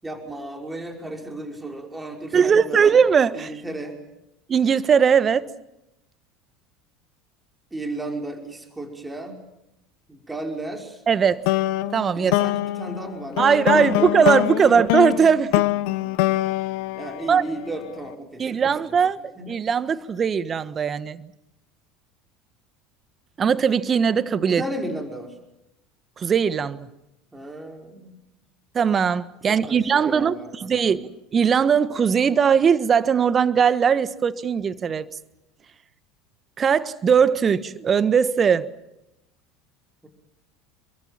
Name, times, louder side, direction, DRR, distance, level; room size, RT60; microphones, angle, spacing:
voice 1, 0.0-2.9 3.3-4.0 7.7-9.4 10.1-11.0 12.2-14.3 14.6-14.8 16.9-18.7 19.4-19.5 24.4-25.4 27.3-28.2 29.5-30.9 40.0-40.1, right 1 dB, 15° right, 5.4 m, -34 dB
voice 2, 2.3-3.5 4.5-5.5 11.1-11.4 11.9-12.3 13.4-15.6 17.3-17.4 18.4-21.3 23.4-24.6 26.2-26.9 28.7-35.1 36.6-38.7, right 7 dB, 30° right, 1.4 m, -20 dB
sound 1, 11.5-17.9, left 18 dB, 60° left, 1.3 m, -24 dB
28.5 x 23.5 x 7.5 m
figure-of-eight pair, 70°, 0 cm